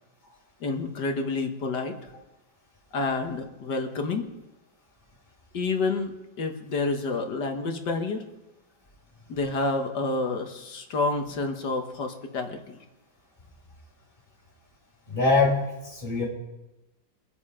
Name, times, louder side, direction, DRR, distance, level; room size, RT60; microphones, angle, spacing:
voice 1, 0.6-2.1 2.9-4.3 5.5-6.1 6.4-8.2 9.3-12.8, left 3 dB, 65° left, 4 dB, 2.0 m, -29 dB
voice 2, 15.1-16.2, left 3 dB, 25° left, -5 dB, 4.8 m, -23 dB
24.0 x 8.3 x 5.0 m, 1.0 s
omnidirectional pair, 2.0 m